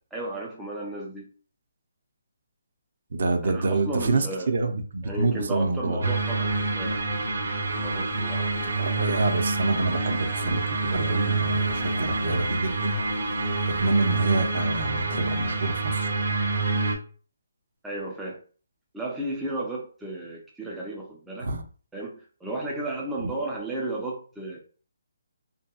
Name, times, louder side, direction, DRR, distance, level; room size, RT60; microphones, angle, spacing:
voice 1, 0.1-1.3 3.4-4.5 5.0-8.7 17.8-18.4 18.9-21.5 21.9-24.6, right 2 dB, 5° right, -5 dB, 0.3 m, -34 dB
voice 2, 3.1-6.0 8.2-8.3 8.8-13.0 13.8-16.1 21.4-21.6 23.2-23.3, right 2 dB, 55° right, 5 dB, 0.5 m, -27 dB
sound 1, 6.0-16.9, right 3 dB, 75° right, 0.9 m, -27 dB
2.6 x 2.6 x 2.3 m, 0.39 s
hypercardioid pair, 175°, 0 cm